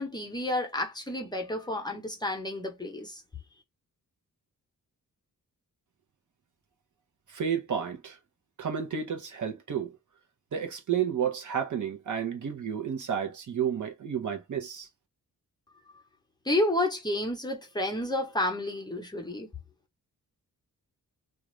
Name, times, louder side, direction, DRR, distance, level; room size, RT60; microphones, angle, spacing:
voice 1, 0.0-3.2 16.4-19.5, left 1 dB, 10° left, 0.8 m, -30 dB
voice 2, 7.3-8.2 8.6-9.9 10.5-14.9, right 8 dB, 55° right, 0.9 m, -31 dB
2.5 x 2.4 x 3.1 m
cardioid pair, 100°, 35 cm